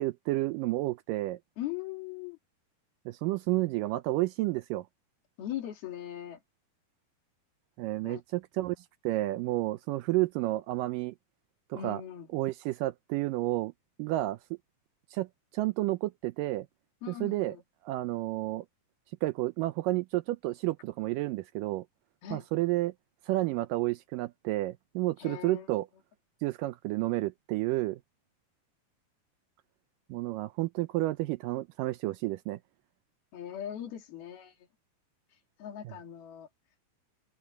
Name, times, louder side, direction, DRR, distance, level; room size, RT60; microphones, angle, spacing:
voice 1, 0.0-1.4 3.1-4.9 7.8-11.1 11.7-12.0 12.3-13.7 14.0-14.4 15.1-15.3 15.5-16.7 17.1-17.6 17.8-18.7 19.2-21.9 22.3-22.9 23.3-25.9 26.4-28.0 30.1-32.6 35.9-36.0, right 18 dB, 80° right, 2.0 m, -31 dB
voice 2, 1.6-2.4 5.4-6.4 8.0-8.2 11.7-12.3 17.0-17.6 22.2-22.5 25.2-25.7 33.3-34.6 35.6-36.5, left 11 dB, 85° left, 4.6 m, -39 dB
open air
omnidirectional pair, 4.3 m